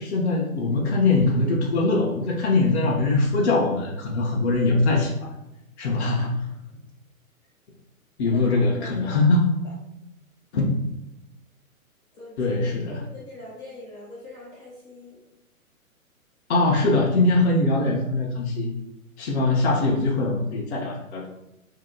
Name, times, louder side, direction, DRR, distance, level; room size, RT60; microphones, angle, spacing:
voice 1, 0.0-5.3 5.8-6.3 8.2-9.4 10.5-10.7 12.4-13.0 16.5-18.7 19.2-21.3, left 2 dB, 50° left, -2 dB, 0.7 m, -22 dB
voice 2, 8.3-8.9 12.1-12.6 12.9-15.2, left 2 dB, 20° left, -6 dB, 0.7 m, -42 dB
2.7 x 2.2 x 3.7 m, 0.88 s
figure-of-eight pair, 130°, 43 cm